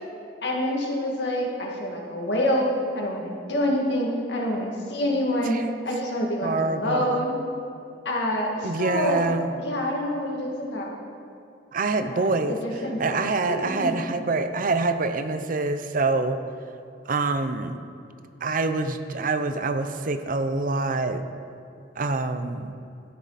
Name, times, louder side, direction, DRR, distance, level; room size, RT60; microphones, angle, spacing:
voice 1, 0.4-7.3 8.1-9.3 9.6-10.9 12.0-14.0, left 1 dB, 70° left, -1 dB, 2.0 m, -27 dB
voice 2, 6.4-7.3 8.6-9.6 11.7-12.6 13.0-16.4 17.1-17.8 18.4-21.2 22.0-22.7, right 3 dB, 50° right, 9 dB, 0.6 m, -26 dB
13.5 x 9.7 x 4.2 m, 2.6 s
head